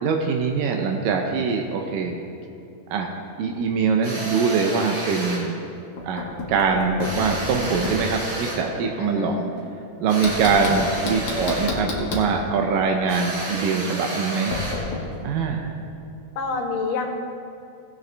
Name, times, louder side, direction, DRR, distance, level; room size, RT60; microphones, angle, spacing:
voice 1, 0.0-2.2 2.9-3.1 3.4-5.6 6.0-9.4 10.0-14.6 15.2-15.8, right 5 dB, 85° right, 2 dB, 2.4 m, -23 dB
sound 1, 4.0-5.5 7.0-8.7 10.1-11.8 13.1-14.9, right 1 dB, 60° right, 3.8 m, -31 dB
Knock, 6.0-8.1 10.2-12.3 14.5-15.0, left 3 dB, 50° left, 1.7 m, -30 dB
voice 2, 9.0-9.4 10.5-10.8 16.4-17.1, left 4 dB, 80° left, 3 dB, 2.6 m, -28 dB
18.0 x 7.6 x 3.3 m, 2.6 s
omnidirectional pair, 3.8 m